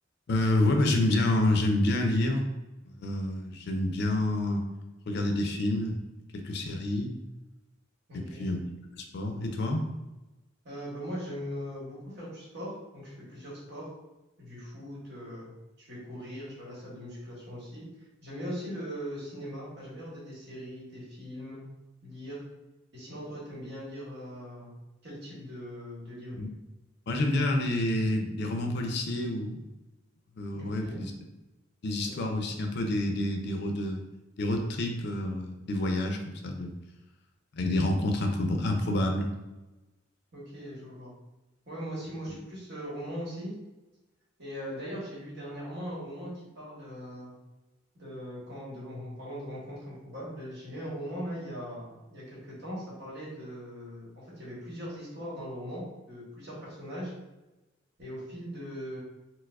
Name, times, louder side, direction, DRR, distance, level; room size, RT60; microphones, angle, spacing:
voice 1, 0.3-2.5 2.8-4.7 5.1-6.0 6.3-7.1 8.1-8.6 8.9-9.9 26.4-26.5 27.1-29.6 30.4-31.1 31.8-34.0 34.4-36.7 37.6-39.3, left 1 dB, 60° left, 3 dB, 0.4 m, -28 dB
voice 2, 8.1-8.5 10.6-13.9 14.4-15.5 15.8-17.8 18.2-21.6 22.0-22.4 22.9-24.7 25.0-26.4 30.5-31.0 32.0-32.1 40.3-41.1 41.7-43.5 44.4-47.3 47.9-57.1 58.0-59.0, equal, 60° right, -6 dB, 1.2 m, -40 dB
4.5 x 2.0 x 2.3 m, 1.0 s
head